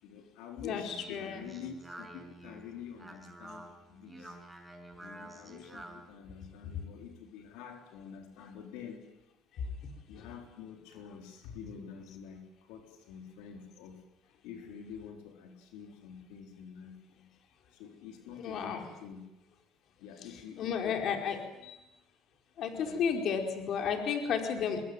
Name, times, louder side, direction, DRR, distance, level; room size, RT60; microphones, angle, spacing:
voice 1, 0.0-4.4 5.0-9.0 10.1-14.0 14.4-17.3 17.7-19.3 20.0-21.2 22.7-23.0, left 7 dB, 85° left, 4 dB, 4.0 m, -47 dB
voice 2, 0.6-1.5 9.6-9.9 10.2-10.3 18.3-18.9 20.6-21.8 22.6-24.8, left 6 dB, 60° left, 4 dB, 4.7 m, -33 dB
Speech, 0.7-6.1, right 1 dB, 10° right, 5.8 m, -49 dB
24.5 x 22.0 x 9.6 m, 0.94 s
cardioid pair, 110°, 0 cm